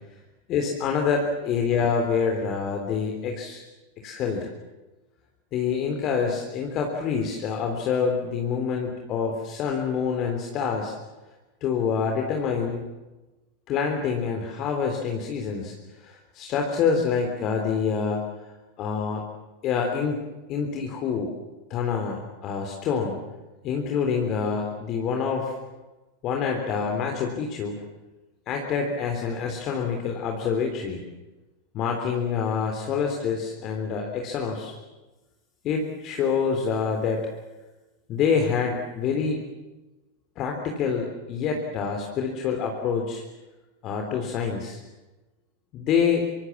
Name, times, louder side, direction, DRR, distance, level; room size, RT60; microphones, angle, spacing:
voice 1, 0.5-3.6 4.0-4.5 5.5-10.9 11.6-12.8 13.7-15.7 16.0-18.3 18.8-19.2 19.6-20.2 20.5-21.3 21.7-23.2 23.6-25.6 26.2-27.8 28.5-31.0 31.7-34.8 35.6-37.3 38.1-39.4 40.4-43.2 43.8-44.8 45.7-46.3, left 6 dB, 35° left, 2 dB, 3.6 m, -26 dB
26.5 x 24.5 x 7.4 m, 1.1 s
figure-of-eight pair, 90°, 0 cm